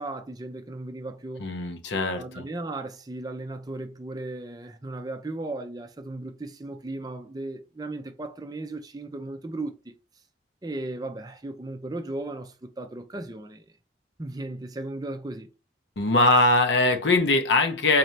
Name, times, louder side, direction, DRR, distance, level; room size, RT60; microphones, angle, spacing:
voice 1, 0.0-1.5 2.1-9.9 10.6-13.7 14.2-15.5, right 2 dB, 20° right, 0.5 m, -36 dB
voice 2, 1.4-2.4 16.0-18.0, left 2 dB, 75° left, 0.7 m, -21 dB
4.2 x 2.7 x 3.2 m
head